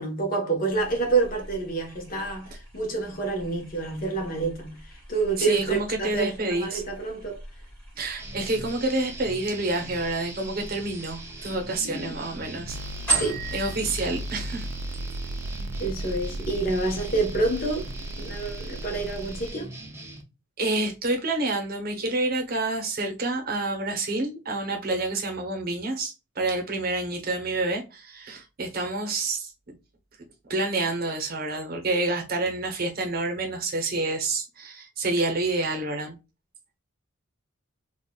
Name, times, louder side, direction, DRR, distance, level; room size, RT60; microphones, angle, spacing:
voice 1, 0.0-7.4 11.9-12.1 13.2-13.4 15.8-17.9 18.2-19.7, right 3 dB, 40° left, 1.0 m, -28 dB
sound 1, 0.7-13.7, right 3 dB, 5° left, 1.9 m, -38 dB
voice 2, 5.4-6.8 8.0-12.8 13.5-14.7 20.6-29.7 30.5-36.2, right 2 dB, 45° right, 0.8 m, -28 dB
sound 2, 8.2-20.2, right 2 dB, 10° right, 0.5 m, -42 dB
sound 3, 12.7-19.5, right 1 dB, 70° right, 0.3 m, -35 dB
3.9 x 2.4 x 2.2 m
head